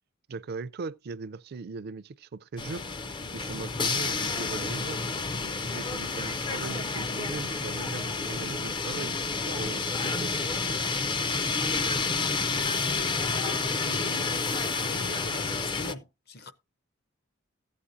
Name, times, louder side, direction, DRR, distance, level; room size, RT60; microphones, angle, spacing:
voice 1, 0.3-2.8 3.3-5.0 5.7-9.1 9.6-10.3, right 4 dB, 50° right, 0.4 m, -39 dB
sound 1, 2.6-15.9, left 4 dB, 25° left, 0.4 m, -30 dB
sound 2, 8.8-9.1 9.4-15.9, left 1 dB, 75° left, 3.5 m, -50 dB
voice 2, 13.8-14.5 14.8-16.5, left 3 dB, 50° left, 0.7 m, -42 dB
14.5 x 8.5 x 2.6 m
head